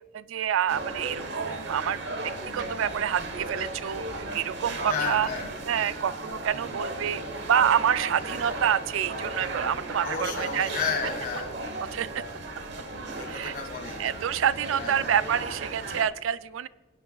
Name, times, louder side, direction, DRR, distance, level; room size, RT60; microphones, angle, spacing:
voice 1, 0.1-2.0 2.5-5.3 5.7-10.7 11.8-12.2 13.3-13.5 14.0-16.7, right 9 dB, 85° right, 16 dB, 0.3 m, -27 dB
sound 1, 0.7-16.0, right 2 dB, 60° right, 1.1 m, -36 dB
voice 2, 4.9-5.5 6.5-6.8 10.0-11.5 13.2-14.1 14.8-15.1, left 6 dB, 50° left, 4 dB, 1.9 m, -32 dB
25.0 x 8.7 x 2.3 m, 1.3 s
head